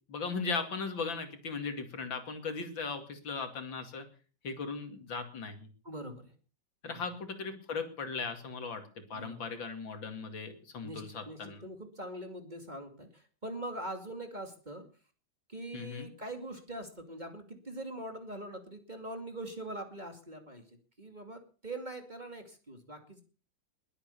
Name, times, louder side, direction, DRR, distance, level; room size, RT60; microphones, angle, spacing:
voice 1, 0.1-4.1 4.4-5.7 6.8-8.8 9.1-11.6 15.7-16.1, left 4 dB, 70° left, 7 dB, 3.2 m, -38 dB
voice 2, 5.8-6.3 6.8-7.0 9.1-9.5 10.8-14.9 15.5-23.2, right 1 dB, 20° right, 6 dB, 2.4 m, -43 dB
21.5 x 8.6 x 6.9 m, 0.39 s
omnidirectional pair, 2.2 m